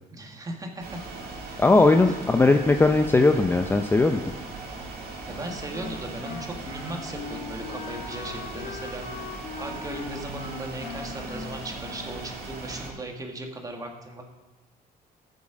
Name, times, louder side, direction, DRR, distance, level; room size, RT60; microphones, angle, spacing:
voice 1, 0.1-1.0 1.5-1.6 2.1-2.2 5.3-9.0 9.6-14.2, right 1 dB, 20° right, 2 dB, 1.7 m, -37 dB
sound 1, 0.8-12.9, right 3 dB, 65° right, 2.2 m, -39 dB
voice 2, 1.6-4.2, left 3 dB, 15° left, 6 dB, 0.5 m, -19 dB
Wind instrument woodwind instrument, 5.3-12.7, left 4 dB, 65° left, 4.2 m, -40 dB
13.5 x 7.4 x 5.0 m, 1.1 s
cardioid pair, 110°, 17 cm